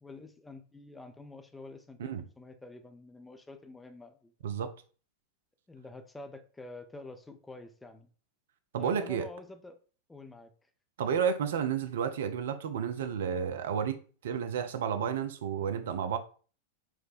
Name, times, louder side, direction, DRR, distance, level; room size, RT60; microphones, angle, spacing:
voice 1, 0.0-4.3 5.7-8.1 8.8-9.8 10.1-10.5, left 2 dB, 10° left, 0.4 m, -48 dB
voice 2, 8.7-9.3 11.0-16.2, right 7 dB, 60° right, 0.4 m, -31 dB
5.6 x 2.1 x 2.5 m
figure-of-eight pair, 90°, 0 cm